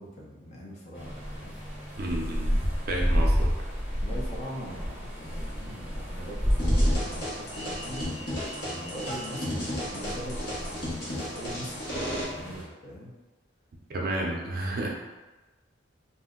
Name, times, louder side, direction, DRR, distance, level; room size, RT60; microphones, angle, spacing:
voice 1, 0.0-1.5 4.0-8.1 8.7-13.1, equal, 35° left, -4 dB, 0.6 m, -41 dB
sound 1, 0.9-12.6, equal, 10° right, 0.8 m, -30 dB
voice 2, 2.0-2.6 2.9-3.5 13.9-14.9, right 1 dB, 45° right, -1 dB, 0.5 m, -31 dB
sound 2, 6.6-12.2, equal, 55° left, 1.0 m, -34 dB
2.6 x 2.1 x 3.7 m, 1.2 s
head